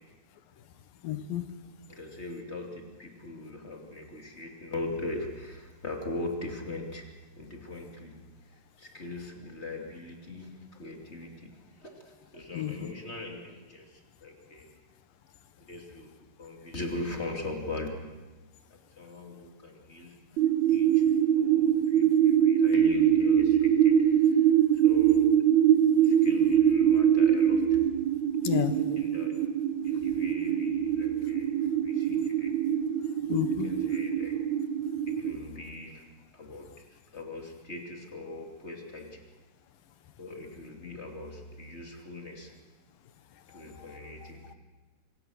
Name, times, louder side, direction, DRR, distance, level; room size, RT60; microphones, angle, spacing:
voice 1, 1.0-1.5 12.5-12.9 28.4-28.8 33.3-33.8 43.5-44.3, left 10 dB, 85° left, 10 dB, 3.0 m, -32 dB
voice 2, 1.9-7.1 7.4-8.2 8.8-13.9 14.2-14.7 15.7-16.1 16.4-17.9 18.7-20.2 20.7-21.0 21.3-24.4 24.8-25.4 26.0-27.9 28.5-29.4 29.8-31.5 31.8-32.5 33.6-34.4 35.1-36.0 36.3-36.8 37.1-39.2 40.2-42.5 43.5-44.5, left 2 dB, 20° left, 2 dB, 2.7 m, -40 dB
sound 1, 20.4-35.4, right 9 dB, 70° right, 2.2 m, -24 dB
25.5 x 24.0 x 6.5 m, 1.2 s
omnidirectional pair, 3.9 m